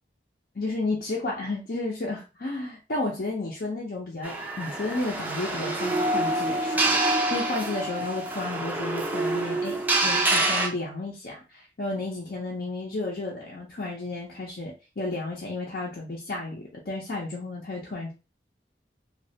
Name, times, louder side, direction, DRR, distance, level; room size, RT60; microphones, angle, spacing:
voice 1, 0.5-18.1, left 2 dB, 55° left, -3 dB, 0.6 m, -32 dB
sound 1, 4.2-10.7, right 2 dB, 10° right, 0.4 m, -26 dB
3.1 x 2.3 x 2.7 m, 0.30 s
head